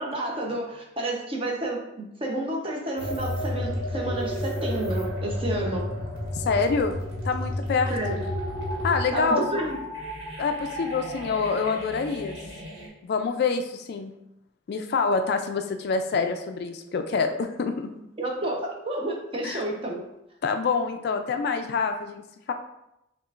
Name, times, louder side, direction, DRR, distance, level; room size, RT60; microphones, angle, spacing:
voice 1, 0.0-5.9 7.9-8.2 9.1-9.8 18.2-20.0, right 1 dB, 30° right, -1 dB, 0.7 m, -30 dB
sound 1, 3.0-12.9, left 1 dB, 80° right, 1.4 m, -32 dB
voice 2, 6.4-7.0 7.2-8.2 8.8-9.4 10.4-12.4 13.0-14.1 14.7-17.9 19.4-19.6 20.4-22.2 22.5-22.6, left 4 dB, 55° left, 7 dB, 0.3 m, -26 dB
6.5 x 2.4 x 2.4 m, 0.85 s
head